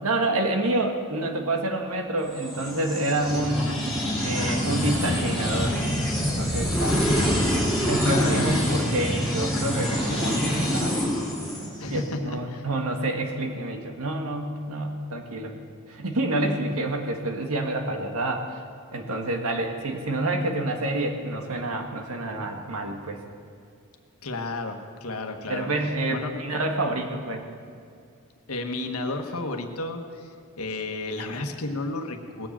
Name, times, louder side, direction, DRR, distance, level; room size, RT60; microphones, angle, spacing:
voice 1, 0.0-3.7 4.2-5.8 6.4-7.0 7.9-11.0 11.9-15.5 15.9-18.6 18.9-23.2 25.5-27.4, right 2 dB, 70° right, 3 dB, 1.7 m, -28 dB
sound 1, 2.3-12.0, equal, ahead, 3.7 m, -25 dB
voice 2, 6.8-7.2 8.0-8.5 11.8-12.7 24.2-25.7 26.1-26.3 28.5-32.5, left 2 dB, 70° left, 4 dB, 1.4 m, -32 dB
19.5 x 7.4 x 7.3 m, 2.3 s
head